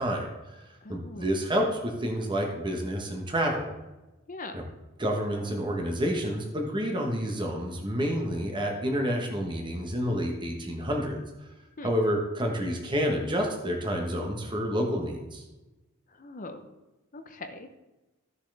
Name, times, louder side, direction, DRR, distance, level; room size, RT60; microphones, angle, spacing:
voice 1, 0.0-3.7 4.5-4.6 5.0-11.2 11.8-15.4, equal, 20° right, 1 dB, 1.2 m, -29 dB
voice 2, 0.8-1.3 4.3-4.6 11.8-11.9 16.1-16.7 17.1-17.7, left 2 dB, 40° left, 7 dB, 0.7 m, -41 dB
14.5 x 7.0 x 3.4 m, 1.1 s
head